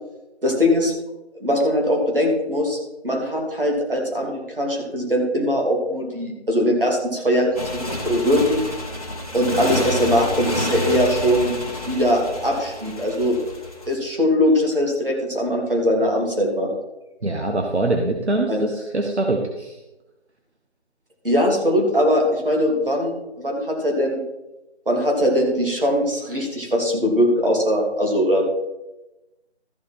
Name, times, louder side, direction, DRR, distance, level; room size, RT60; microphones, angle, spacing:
voice 1, 0.4-0.9 1.4-2.8 3.0-8.6 9.3-11.5 11.9-13.4 13.9-16.7 18.5-18.6 21.2-24.2 24.9-28.4, equal, 55° right, 0 dB, 3.0 m, -21 dB
Motorcycle, 7.5-13.9, left 1 dB, 35° left, 1.3 m, -29 dB
voice 2, 17.2-19.8, right 2 dB, 75° right, 2 dB, 1.4 m, -23 dB
13.5 x 6.7 x 4.4 m, 0.98 s
figure-of-eight pair, 180°, 34 cm